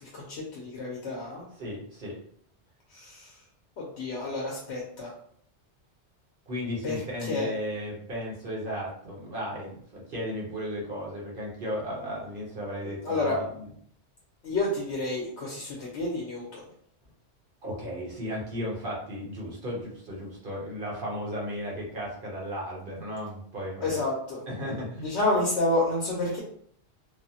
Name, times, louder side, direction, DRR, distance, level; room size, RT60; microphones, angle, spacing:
voice 1, 0.0-1.4 2.9-3.4 3.8-5.1 6.8-7.5 12.0-12.2 12.8-13.4 14.4-16.7 23.8-24.5 25.0-26.4, left 2 dB, 75° left, -3 dB, 0.9 m, -30 dB
voice 2, 1.6-2.1 6.5-13.4 17.6-24.0 24.5-25.1, equal, 55° right, -4 dB, 1.0 m, -35 dB
3.4 x 2.0 x 2.7 m, 0.64 s
omnidirectional pair, 1.2 m